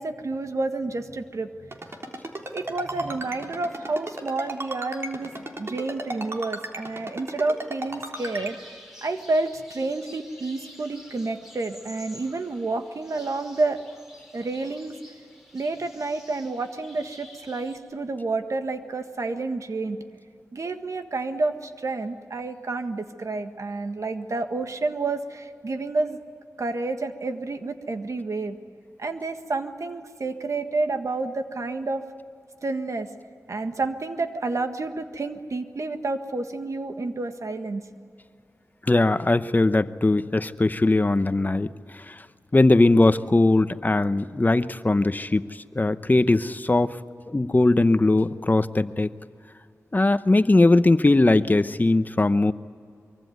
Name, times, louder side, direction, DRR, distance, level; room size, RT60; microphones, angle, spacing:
voice 1, 0.0-1.5 2.5-5.3 5.6-8.6 9.0-13.8 14.3-15.0 15.5-20.0 20.5-26.2 26.6-28.6 29.0-32.0 32.6-33.1 33.5-37.8, right 3 dB, 65° right, 7 dB, 1.6 m, -29 dB
Ringtone, 1.7-8.5, right 1 dB, 50° right, 3.5 m, -34 dB
sound 1, 8.1-17.8, left 1 dB, 5° right, 5.3 m, -49 dB
voice 2, 38.9-41.7 42.1-42.2 42.5-45.4 45.8-47.0 47.3-49.1 49.9-52.5, left 2 dB, 30° left, 12 dB, 0.9 m, -20 dB
24.0 x 23.5 x 9.4 m, 2.3 s
wide cardioid pair, 60°, 6 cm